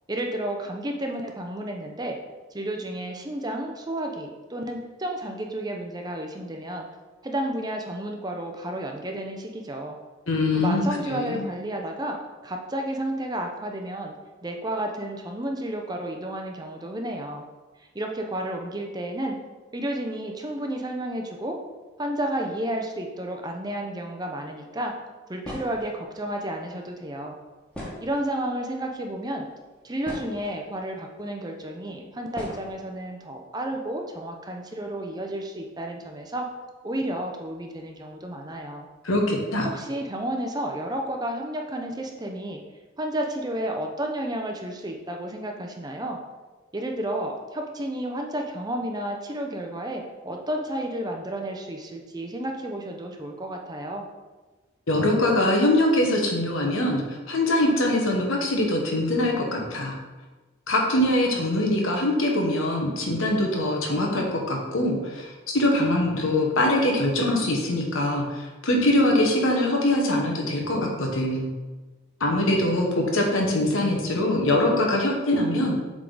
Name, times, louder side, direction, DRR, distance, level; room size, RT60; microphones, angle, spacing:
voice 1, 0.1-2.2 2.5-6.9 7.2-10.0 10.5-12.2 12.4-14.1 14.4-17.4 17.8-19.4 19.7-21.6 22.0-24.9 25.3-27.4 28.0-29.5 29.8-36.5 36.8-38.9 39.7-42.6 43.0-46.2 46.7-54.1, right 1 dB, 20° right, 2 dB, 0.5 m, -31 dB
voice 2, 10.3-11.4 39.0-39.7 54.9-60.0 60.7-71.5 72.2-75.8, left 1 dB, 80° left, 1 dB, 1.2 m, -23 dB
sound 1, 25.4-25.9 27.7-28.4 29.3-29.4 29.8-30.6 31.5-31.6 32.3-32.7, left 1 dB, 5° left, 1.5 m, -38 dB
7.6 x 3.7 x 3.9 m, 1.2 s
head